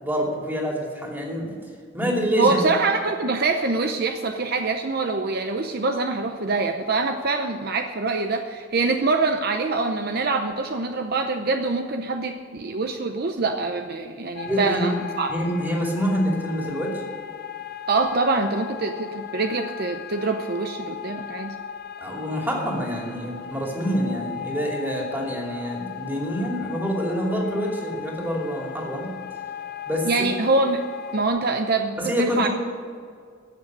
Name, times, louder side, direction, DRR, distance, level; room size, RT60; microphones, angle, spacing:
voice 1, 0.0-1.5 1.9-2.6 14.5-14.9 15.3-17.0 22.0-29.1 29.9-30.3 32.0-32.5, equal, 10° right, -2 dB, 2.7 m, -26 dB
voice 2, 2.4-15.3 17.9-21.6 30.0-30.8 31.1-32.5, right 3 dB, 55° right, 5 dB, 0.7 m, -24 dB
sound 1, 14.4-31.3, left 9 dB, 55° left, 0.8 m, -37 dB
15.5 x 6.6 x 8.6 m, 2.1 s
head